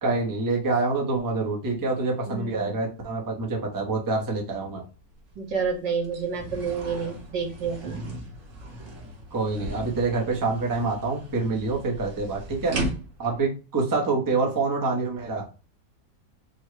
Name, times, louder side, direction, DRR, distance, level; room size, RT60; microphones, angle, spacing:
voice 1, 0.0-4.8 9.3-12.7 13.2-15.4, right 3 dB, 25° right, 0 dB, 0.5 m, -26 dB
voice 2, 2.2-2.8 5.4-8.0, right 5 dB, 80° right, 0 dB, 1.8 m, -29 dB
sound 1, 4.5-4.6 5.0-13.4, right 1 dB, 50° right, 1.2 m, -37 dB
4.4 x 2.2 x 4.7 m, 0.34 s
omnidirectional pair, 2.0 m